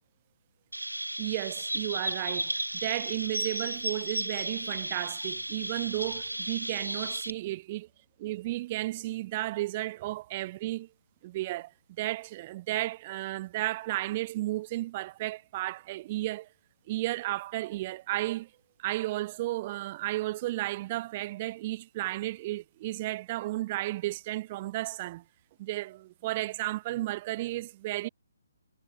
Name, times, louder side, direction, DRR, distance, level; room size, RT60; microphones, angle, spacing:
Chirp tweet, 0.7-7.3, right 1 dB, 80° right, 2.0 m, -34 dB
voice 1, 1.2-7.9 8.2-10.9 11.2-11.7 12.0-16.5 16.9-18.5 18.8-25.2 25.6-28.1, right 17 dB, 30° right, 0.5 m, -33 dB
figure-of-eight pair, 135°, 0 cm